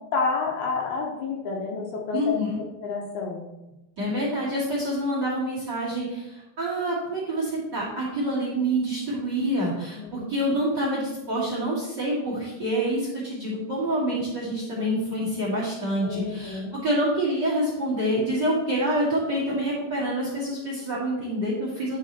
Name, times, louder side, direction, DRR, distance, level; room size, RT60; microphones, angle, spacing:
voice 1, 0.1-3.5 9.9-10.3 16.0-16.7, left 4 dB, 70° left, -1 dB, 2.8 m, -29 dB
voice 2, 2.1-2.6 4.0-22.0, right 1 dB, 35° right, -6 dB, 2.0 m, -27 dB
10.5 x 4.5 x 4.2 m, 0.96 s
omnidirectional pair, 4.9 m